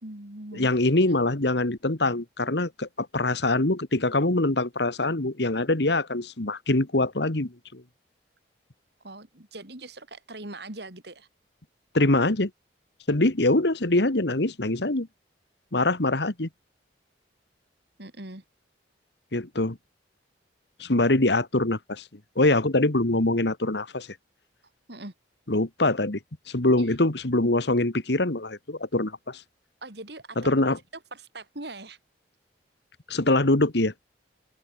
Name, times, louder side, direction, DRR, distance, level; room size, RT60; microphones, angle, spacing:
voice 1, 0.0-0.7 9.0-11.3 18.0-18.4 24.9-25.1 29.8-30.5 31.1-32.0, right 2 dB, 60° right, 3.1 m, -41 dB
voice 2, 0.5-7.8 11.9-12.5 13.1-15.1 15.7-16.5 19.3-19.8 20.8-22.0 22.4-24.1 25.5-26.2 26.5-29.4 30.4-30.8 33.1-33.9, left 2 dB, 65° left, 1.7 m, -24 dB
open air
head